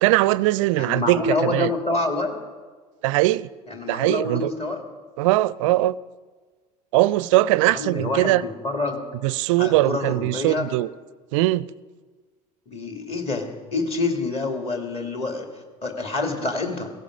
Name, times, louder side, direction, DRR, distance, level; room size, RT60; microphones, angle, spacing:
voice 1, 0.0-1.7 3.0-3.5 3.9-4.5 5.2-6.0 6.9-8.4 9.2-10.9 11.3-11.7, right 17 dB, 50° right, 0.5 m, -20 dB
voice 2, 0.8-2.4 3.7-4.8 7.7-9.0 9.6-10.7 12.7-15.5 15.8-16.9, left 3 dB, 30° left, 2.5 m, -27 dB
17.0 x 16.0 x 5.2 m
figure-of-eight pair, 70°, 20 cm